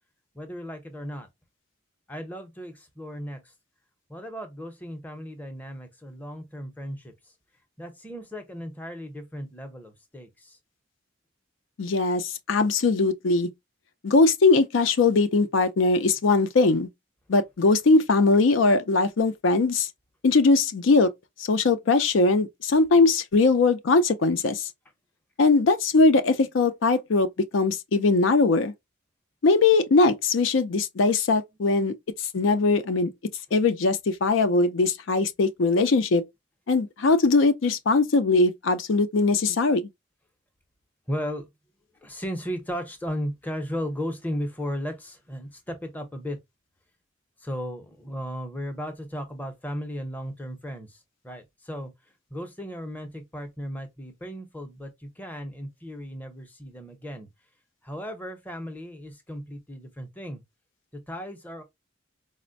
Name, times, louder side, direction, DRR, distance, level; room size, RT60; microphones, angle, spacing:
voice 1, 0.3-1.3 2.1-3.5 4.1-7.3 7.8-10.6 41.1-41.5 42.0-46.4 47.4-51.9 52.3-57.3 57.8-60.4 60.9-61.6, equal, 10° left, 0.6 m, -35 dB
voice 2, 11.8-13.5 14.0-16.9 17.3-19.9 20.2-21.1 21.4-24.7 25.4-27.3 27.5-28.7 29.4-31.9 32.3-33.1 33.5-36.2 36.7-39.8, left 3 dB, 75° left, 0.5 m, -21 dB
4.2 x 2.1 x 2.5 m
head